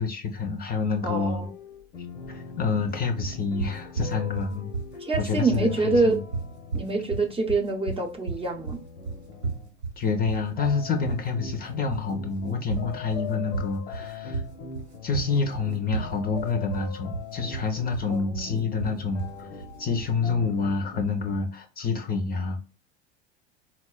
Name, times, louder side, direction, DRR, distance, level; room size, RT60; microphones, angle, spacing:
voice 1, 0.0-1.5 2.3-4.7 5.2-6.2 10.0-14.4 15.0-19.5 19.8-22.6, left 4 dB, 30° left, 0.5 m, -28 dB
voice 2, 1.0-1.5 5.0-6.2 6.7-8.8 18.1-18.6, right 3 dB, 15° right, 0.6 m, -26 dB
sound 1, 1.3-9.8 10.6-21.0, left 5 dB, 80° left, 0.6 m, -41 dB
sound 2, 3.2-20.2, right 4 dB, 85° right, 1.1 m, -34 dB
4.1 x 2.1 x 2.2 m
hypercardioid pair, 85°, 32 cm